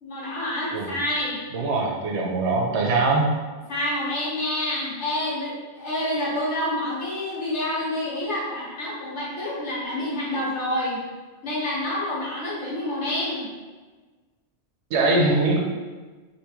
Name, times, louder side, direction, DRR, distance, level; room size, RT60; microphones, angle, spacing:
voice 1, 0.0-1.4 3.7-11.0 11.4-13.5, left 1 dB, 80° left, -6 dB, 1.4 m, -28 dB
voice 2, 1.5-3.3 14.9-15.6, right 3 dB, 80° right, 0 dB, 0.9 m, -22 dB
3.1 x 2.5 x 3.4 m, 1.3 s
omnidirectional pair, 1.2 m